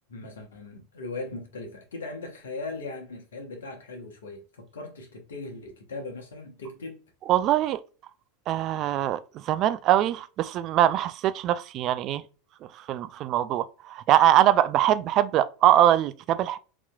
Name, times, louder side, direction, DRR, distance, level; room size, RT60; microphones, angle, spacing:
voice 1, 0.1-7.0, left 3 dB, 75° left, 1.1 m, -39 dB
voice 2, 7.3-7.8 8.5-12.2 12.9-16.6, right 12 dB, 45° right, 0.3 m, -22 dB
4.0 x 2.9 x 2.2 m
hypercardioid pair, 85°, 0 cm